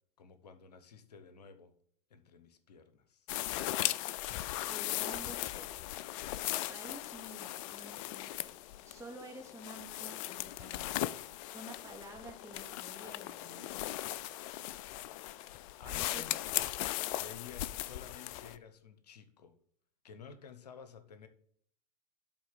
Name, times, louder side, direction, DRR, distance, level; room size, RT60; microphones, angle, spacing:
voice 1, 0.2-1.7 2.1-3.3 15.8-16.4 17.2-19.5 20.0-21.3, left 6 dB, 75° left, 10 dB, 0.8 m, -52 dB
sound 1, 3.3-18.6, left 15 dB, 50° left, 0.4 m, -38 dB
voice 2, 4.7-5.8 6.7-8.5 8.8-11.0 11.5-13.9 15.8-16.2, right 1 dB, 15° right, 0 dB, 2.4 m, -50 dB
8.2 x 3.7 x 6.5 m, 0.62 s
figure-of-eight pair, 85°, 21 cm